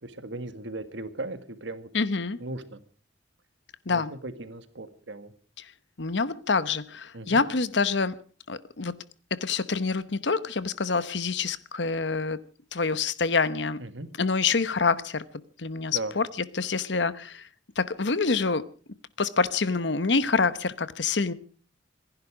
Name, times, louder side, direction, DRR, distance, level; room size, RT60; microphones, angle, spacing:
voice 1, 0.0-1.9 2.4-2.8 3.9-5.3 7.1-7.4 13.8-14.1 15.9-16.1, right 2 dB, 75° right, 1.8 m, -37 dB
voice 2, 1.9-2.4 3.9-4.1 5.6-5.7 6.0-8.1 8.5-9.0 9.3-12.4 12.7-13.8 14.2-15.2 15.6-16.3 16.5-17.5 17.8-18.7 19.2-21.3, left 4 dB, 65° left, 1.0 m, -26 dB
26.5 x 11.0 x 5.0 m
head